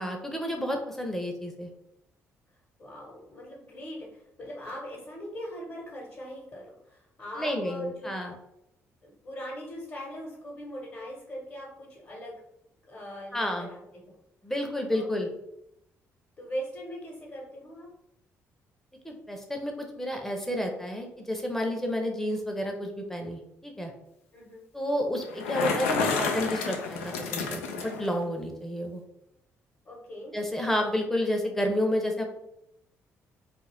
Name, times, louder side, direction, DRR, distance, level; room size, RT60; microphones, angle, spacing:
voice 1, 0.0-1.7 7.4-8.3 13.3-13.7 14.4-15.3 19.0-23.9 24.7-29.0 30.3-32.2, equal, 5° left, 2 dB, 0.7 m, -30 dB
voice 2, 2.8-4.0 4.4-8.1 9.0-12.3 12.9-14.2 14.9-15.3 16.4-17.9 24.3-24.6 29.8-30.3, equal, 40° left, -4 dB, 1.1 m, -40 dB
Bicycle, 25.2-28.1, left 5 dB, 75° left, 0.3 m, -30 dB
2.5 x 2.4 x 3.3 m, 0.82 s
figure-of-eight pair, 45°, 8 cm